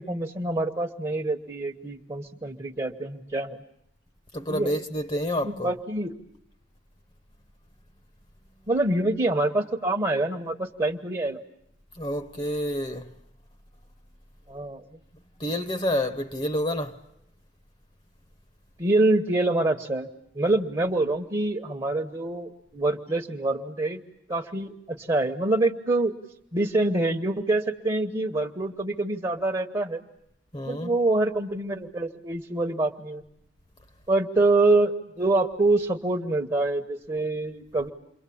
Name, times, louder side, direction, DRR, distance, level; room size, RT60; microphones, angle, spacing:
voice 1, 0.0-3.6 4.5-4.8 5.4-6.2 8.7-11.4 14.5-14.8 18.8-20.1 20.3-24.0 24.3-26.1 26.5-30.0 30.7-33.2 34.1-37.9, right 2 dB, 25° right, 1.1 m, -25 dB
voice 2, 4.3-5.7 12.0-13.1 15.4-17.0 30.5-31.0, left 1 dB, 30° left, 1.0 m, -28 dB
28.5 x 23.0 x 8.5 m
head